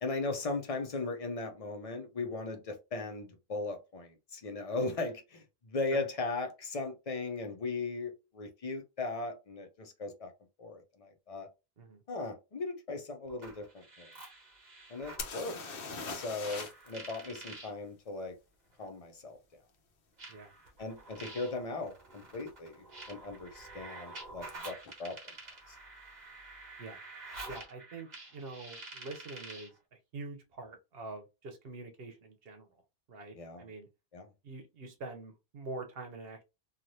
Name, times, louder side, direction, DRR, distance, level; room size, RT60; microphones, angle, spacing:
voice 1, 0.0-10.3 10.6-11.5 12.1-14.1 14.9-15.6 16.1-18.4 18.8-19.4 20.8-25.3 25.7-25.8 33.3-33.7 34.1-34.3, left 3 dB, 40° left, 0.7 m, -38 dB
sound 1, 13.3-15.3 16.4-17.7 18.8-18.9 20.2-29.8, right 2 dB, 45° right, 1.2 m, -48 dB
sound 2, 15.2-16.9 17.2-17.3 20.7-20.8 21.4-21.6 21.8-22.4 24.5-24.6 24.8-24.9, left 4 dB, 65° left, 0.9 m, -41 dB
voice 2, 27.5-29.7 30.1-32.7 33.1-33.9 34.4-36.4, right 3 dB, 70° right, 0.9 m, -45 dB
3.2 x 2.4 x 2.6 m
omnidirectional pair, 1.0 m